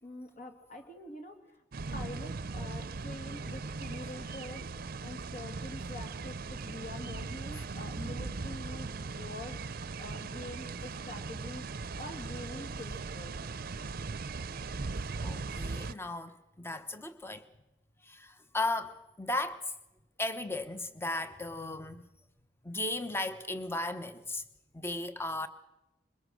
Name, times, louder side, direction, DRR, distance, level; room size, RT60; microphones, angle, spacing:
voice 1, 0.0-1.6 1.9-4.7 5.0-9.6 10.0-13.4, left 2 dB, 45° left, 2.5 m, -45 dB
sound 1, 1.7-15.9, right 4 dB, 55° right, 0.6 m, -39 dB
voice 2, 15.2-17.4 18.1-19.7 20.2-22.0 22.6-24.4 24.7-25.5, left 2 dB, 15° left, 1.0 m, -36 dB
22.5 x 20.5 x 6.3 m
head